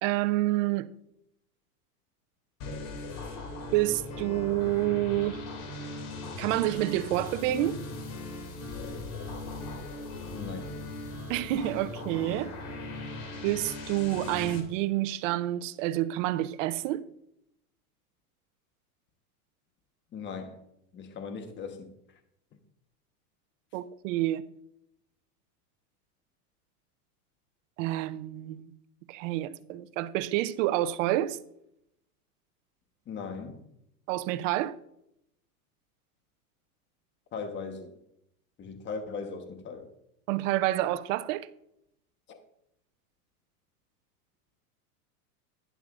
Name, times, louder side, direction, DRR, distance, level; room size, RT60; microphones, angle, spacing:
voice 1, 0.0-0.9 3.7-5.4 6.4-7.8 11.3-12.5 13.4-17.0 23.7-24.4 27.8-28.6 29.1-31.4 34.1-34.8 40.3-41.5, right 15 dB, 55° right, 0.7 m, -28 dB
sound 1, 2.6-14.6, left 2 dB, 45° left, 2.8 m, -39 dB
voice 2, 10.3-10.8 20.1-20.6 20.9-21.9 22.5-22.6 33.1-33.6 37.3-38.0 38.6-39.9 42.3-42.4, left 5 dB, 25° left, 1.2 m, -38 dB
11.0 x 10.5 x 2.5 m
hypercardioid pair, 120°, 45 cm